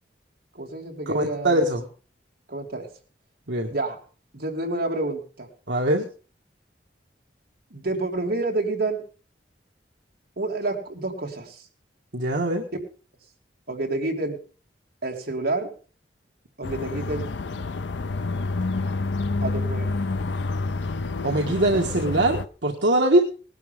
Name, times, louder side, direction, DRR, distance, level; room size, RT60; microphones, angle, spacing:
voice 1, 0.5-1.7 2.5-2.9 3.7-4.0 4.3-5.5 7.7-9.0 10.4-11.6 13.7-14.4 15.0-15.7 16.6-17.2 19.4-20.0, right 2 dB, 60° right, 0 dB, 3.2 m, -28 dB
voice 2, 1.1-1.8 3.5-3.7 5.7-6.1 12.1-12.6 21.2-23.2, right 1 dB, 75° right, 0 dB, 1.7 m, -22 dB
sound 1, 16.6-22.5, left 3 dB, 80° left, 0.6 m, -28 dB
19.0 x 12.0 x 3.7 m, 0.39 s
head